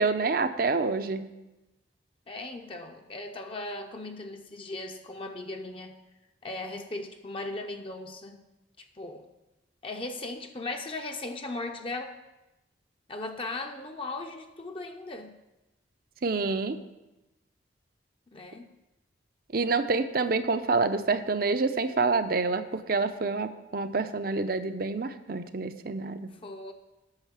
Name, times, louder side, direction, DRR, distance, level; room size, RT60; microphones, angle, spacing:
voice 1, 0.0-1.4 16.2-16.8 19.5-26.4, right 4 dB, 50° right, 10 dB, 0.6 m, -27 dB
voice 2, 2.3-6.0 6.4-8.4 8.8-9.2 9.8-12.1 13.1-15.3 18.3-18.7 26.4-26.7, left 2 dB, 30° left, 4 dB, 0.6 m, -38 dB
8.9 x 6.5 x 7.4 m, 1.0 s
head